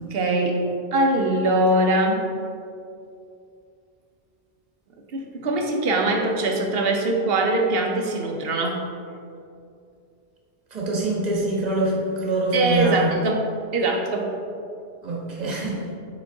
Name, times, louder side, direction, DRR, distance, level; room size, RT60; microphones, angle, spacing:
voice 1, 0.1-2.3 5.1-8.9 12.5-14.3, right 2 dB, 65° right, 2 dB, 0.9 m, -22 dB
voice 2, 10.7-13.1 15.0-15.8, right 2 dB, 40° right, -4 dB, 1.3 m, -24 dB
6.0 x 4.4 x 3.7 m, 2.5 s
omnidirectional pair, 1.1 m